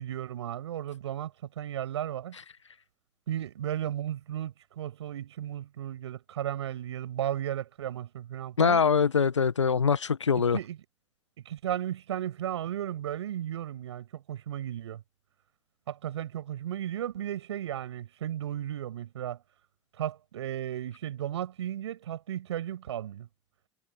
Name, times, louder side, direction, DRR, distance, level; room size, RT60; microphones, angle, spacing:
voice 1, 0.0-2.4 3.3-8.8 10.5-10.8 11.4-15.0 15.9-19.4 20.0-23.3, right 11 dB, 70° right, 6.6 m, -35 dB
voice 2, 8.6-10.6, left 6 dB, 85° left, 1.4 m, -23 dB
figure-of-eight pair, 75°, 15 cm